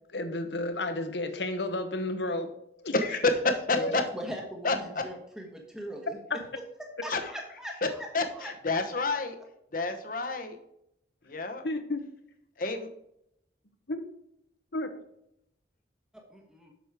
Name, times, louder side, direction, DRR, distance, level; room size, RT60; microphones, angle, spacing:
voice 1, 0.1-2.5 2.8-2.9 3.8-3.9 11.6-12.0 13.9-14.0 14.7-14.9, left 2 dB, 80° left, 8 dB, 1.1 m, -31 dB
voice 2, 2.9-3.8 4.6-4.7 7.1-7.2 8.1-8.2 8.6-9.3 9.7-10.6 11.3-11.6 12.6-12.9, left 3 dB, 50° left, 7 dB, 1.1 m, -28 dB
voice 3, 3.7-6.2 6.8-8.8 9.1-9.2 16.1-16.7, right 1 dB, 5° right, 1 dB, 1.3 m, -40 dB
7.8 x 6.3 x 4.9 m, 0.77 s
head